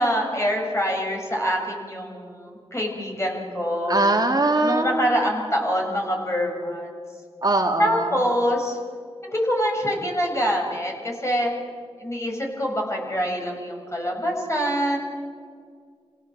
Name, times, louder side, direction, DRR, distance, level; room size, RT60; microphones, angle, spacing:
voice 1, 0.0-4.0 4.6-7.0 7.8-8.8 9.3-11.5 12.0-15.0, equal, 25° left, 0 dB, 7.2 m, -25 dB
voice 2, 3.9-5.1 7.4-8.1, right 2 dB, 40° right, 3 dB, 2.3 m, -21 dB
28.0 x 17.5 x 8.0 m, 2.2 s
cardioid pair, 40°, 11 cm